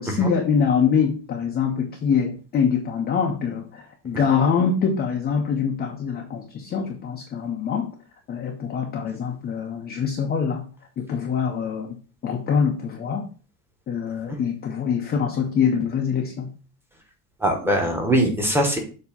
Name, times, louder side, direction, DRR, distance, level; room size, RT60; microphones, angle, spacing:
voice 1, 0.0-7.9 8.3-10.7 11.0-12.0 12.2-13.2 13.9-16.5, left 6 dB, 20° left, 2 dB, 0.5 m, -24 dB
voice 2, 17.4-18.8, right 1 dB, 5° right, 1 dB, 0.9 m, -22 dB
7.1 x 2.7 x 5.1 m, 0.37 s
cardioid pair, 170°, 48 cm